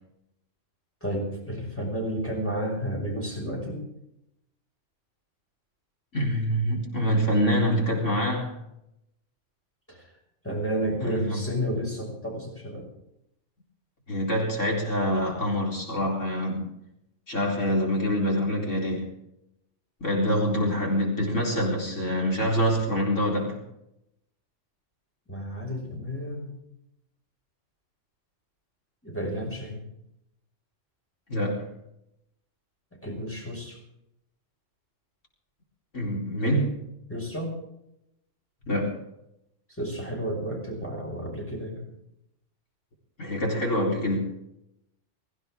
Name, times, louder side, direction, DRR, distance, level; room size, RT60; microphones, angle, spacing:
voice 1, 1.0-3.8 9.9-10.0 10.4-12.9 25.3-26.5 29.0-29.8 33.0-33.8 37.1-37.6 39.7-41.9, equal, 10° left, -2 dB, 5.7 m, -31 dB
voice 2, 6.1-8.6 11.0-11.4 14.1-16.7 17.3-19.1 20.0-23.6 31.3-31.7 35.9-36.8 38.7-39.0 43.2-44.3, equal, 75° left, -2 dB, 4.5 m, -25 dB
22.5 x 15.5 x 3.7 m, 0.82 s
omnidirectional pair, 1.3 m